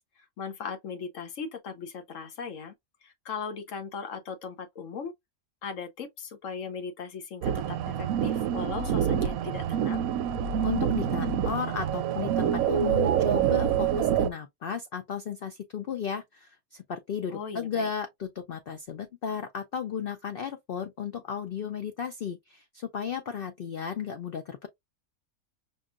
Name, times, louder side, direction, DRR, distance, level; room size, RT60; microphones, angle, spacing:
voice 1, 0.0-5.1 5.6-10.0 17.3-17.9, left 5 dB, 65° left, 1.0 m, -38 dB
sound 1, 7.4-14.3, right 9 dB, 75° right, 1.0 m, -26 dB
voice 2, 10.6-24.7, left 7 dB, 80° left, 0.5 m, -34 dB
5.4 x 2.4 x 2.4 m
omnidirectional pair, 1.6 m